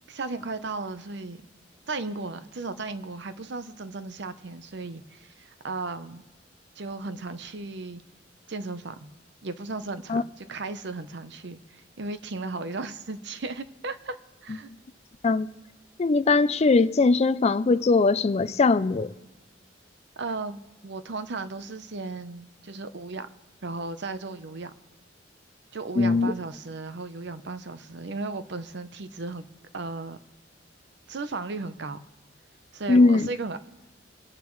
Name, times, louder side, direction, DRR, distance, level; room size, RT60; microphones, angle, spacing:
voice 1, 0.1-1.4 1.9-6.2 6.8-8.0 8.5-9.1 9.4-14.2 14.4-14.7 20.2-23.3 23.6-24.7 25.7-29.4 29.7-30.2 31.1-32.0 32.7-33.6, right 3 dB, 65° right, 0.8 m, -35 dB
voice 2, 16.0-19.1 26.0-26.3 32.9-33.3, left 3 dB, 35° left, 0.4 m, -20 dB
25.5 x 10.5 x 3.2 m
head